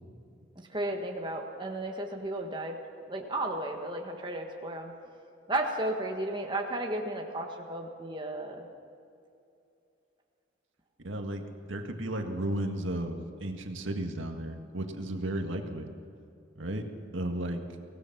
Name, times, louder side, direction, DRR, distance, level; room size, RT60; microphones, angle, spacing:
voice 1, 0.7-2.7 3.1-4.9 5.5-8.7, right 1 dB, 25° right, 2 dB, 1.6 m, -34 dB
voice 2, 11.0-15.9 16.6-16.8 17.1-17.6, right 1 dB, 80° right, 4 dB, 1.9 m, -34 dB
24.0 x 18.0 x 6.1 m, 2.6 s
head